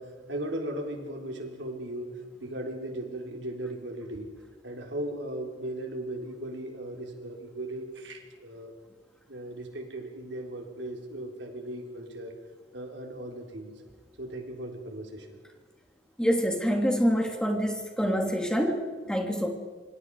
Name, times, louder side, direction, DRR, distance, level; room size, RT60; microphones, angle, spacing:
voice 1, 0.0-4.4 4.6-8.7 9.3-12.3 12.7-13.8 14.2-15.4, right 1 dB, 65° right, 2 dB, 4.3 m, -37 dB
voice 2, 16.2-19.5, equal, 5° left, 2 dB, 3.2 m, -26 dB
26.5 x 25.5 x 5.1 m, 1.5 s
head